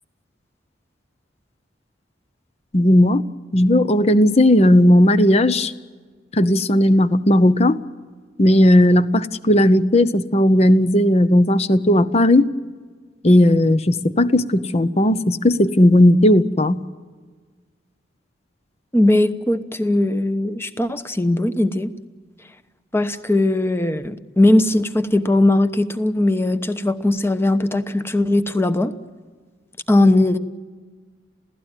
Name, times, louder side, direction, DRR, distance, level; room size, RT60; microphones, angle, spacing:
voice 1, 2.7-3.2 3.5-5.7 6.3-7.8 8.4-12.5 13.2-16.8, left 1 dB, 35° left, 13 dB, 0.8 m, -15 dB
voice 2, 18.9-21.9 22.9-28.9 29.9-30.4, left 1 dB, 15° left, 10 dB, 1.0 m, -19 dB
28.0 x 16.5 x 9.1 m, 1.5 s
head